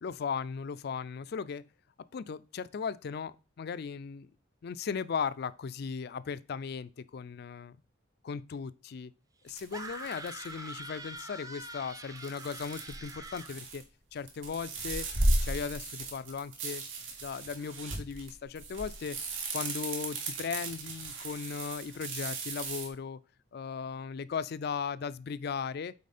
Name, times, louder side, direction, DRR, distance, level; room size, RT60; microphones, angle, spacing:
voice 1, 0.0-1.6 2.1-4.3 4.6-7.8 8.2-9.1 9.4-13.8 14.1-15.1 15.4-16.8 17.2-19.2 19.5-23.2 23.5-25.9, left 6 dB, 55° left, 0.4 m, -37 dB
sound 1, 9.5-10.5 12.2-13.8 14.2-22.9, right 2 dB, 85° right, 1.9 m, -35 dB
sound 2, 9.7-13.6, right 2 dB, 20° right, 0.6 m, -44 dB
8.4 x 4.2 x 4.2 m
head